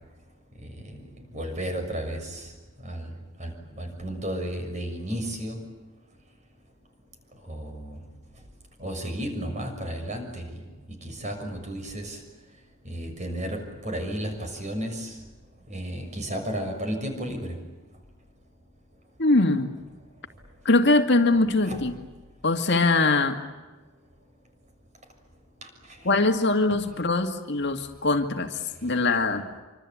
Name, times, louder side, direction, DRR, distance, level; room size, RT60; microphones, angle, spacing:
voice 1, 0.6-1.0 1.3-2.5 2.8-3.1 3.4-5.6 7.5-7.9 8.8-10.5 11.0-12.2 12.8-15.1 15.7-17.6 21.6-21.8 25.6-25.7, right 1 dB, 35° right, 5 dB, 6.6 m, -33 dB
voice 2, 19.2-19.8 20.6-21.9 22.4-23.4 26.0-28.5 28.8-29.4, left 2 dB, 55° left, 5 dB, 2.2 m, -22 dB
26.5 x 25.5 x 8.7 m, 1.2 s
head